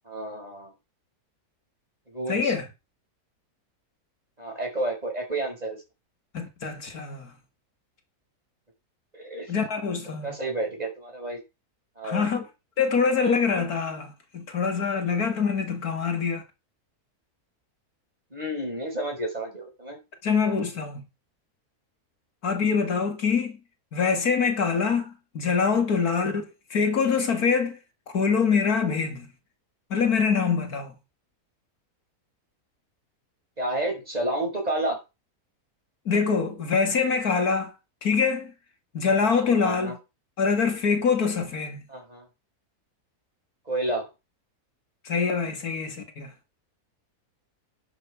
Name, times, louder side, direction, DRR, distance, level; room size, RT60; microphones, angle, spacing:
voice 1, 0.1-0.7 2.1-2.5 4.4-5.8 9.2-9.5 10.2-11.4 12.0-12.4 18.3-20.0 33.6-35.0 39.6-39.9 41.9-42.3 43.7-44.1, right 1 dB, 25° right, 5.3 m, -30 dB
voice 2, 2.3-2.7 6.3-7.3 9.5-10.4 12.0-12.5 12.8-16.4 20.2-21.0 22.4-23.6 23.9-27.8 28.1-29.3 29.9-30.9 36.1-37.7 38.0-38.5 38.9-40.0 40.4-41.8 45.0-46.3, left 5 dB, 75° left, 2.5 m, -24 dB
11.0 x 8.7 x 5.0 m
omnidirectional pair, 1.6 m